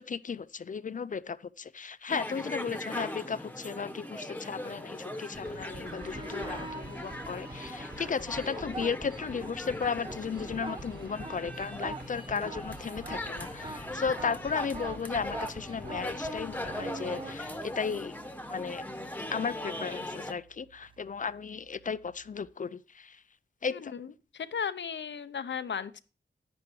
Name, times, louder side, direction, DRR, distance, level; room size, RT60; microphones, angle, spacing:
voice 1, 0.0-18.2 18.5-18.8 19.3-23.2 23.6-23.9, left 6 dB, 45° left, 0.4 m, -35 dB
sound 1, 2.1-20.3, left 1 dB, 10° left, 1.1 m, -40 dB
sound 2, 5.3-22.4, right 1 dB, 65° right, 5.6 m, -49 dB
sound 3, 5.6-6.9 7.5-9.5 9.9-18.1 20.8-20.9, right 3 dB, 25° right, 0.4 m, -43 dB
voice 2, 23.7-24.1 24.3-26.0, left 7 dB, 75° left, 0.7 m, -35 dB
10.5 x 10.0 x 3.1 m
wide cardioid pair, 110°, 19 cm